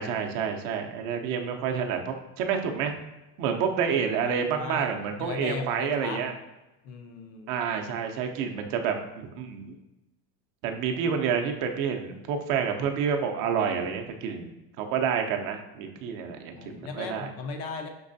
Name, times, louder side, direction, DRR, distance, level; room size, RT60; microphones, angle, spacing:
voice 1, 0.0-3.0 3.4-6.3 7.5-9.7 10.6-14.5 14.8-17.3, right 7 dB, 45° right, 4 dB, 0.6 m, -29 dB
voice 2, 3.9-4.9 5.2-6.2 6.8-7.6 16.5-17.9, left 4 dB, 35° left, 5 dB, 0.4 m, -37 dB
5.3 x 3.1 x 2.6 m, 1.0 s
supercardioid pair, 130°, 47 cm